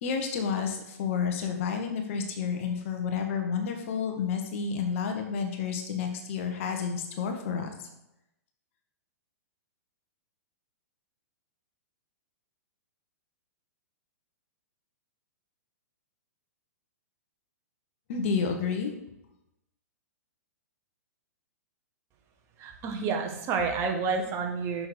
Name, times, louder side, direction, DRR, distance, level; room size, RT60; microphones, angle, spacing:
voice 1, 0.0-7.7 18.1-18.9, left 6 dB, 50° left, 4 dB, 1.3 m, -30 dB
voice 2, 22.6-24.9, right 5 dB, 30° right, 3 dB, 1.4 m, -29 dB
6.4 x 6.2 x 5.0 m, 0.87 s
figure-of-eight pair, 110°, 9 cm